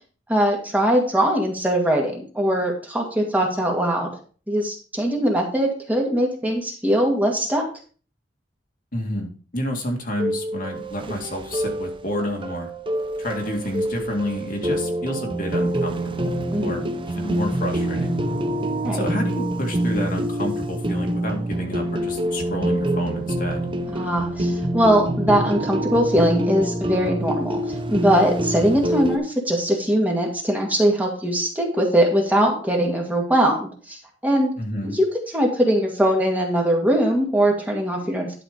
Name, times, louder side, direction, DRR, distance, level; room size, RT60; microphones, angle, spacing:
voice 1, 0.3-4.1 4.5-7.7 16.5-16.9 18.8-19.1 23.9-27.6 27.9-34.6 34.8-35.1 35.3-38.4, equal, 10° right, 0 dB, 2.1 m, -21 dB
voice 2, 8.9-12.7 13.2-18.1 18.9-23.7 34.6-34.9, left 1 dB, 50° left, 2 dB, 2.1 m, -29 dB
sound 1, 10.2-29.2, right 1 dB, 30° right, 0.8 m, -26 dB
11.5 x 5.0 x 5.0 m, 0.38 s
head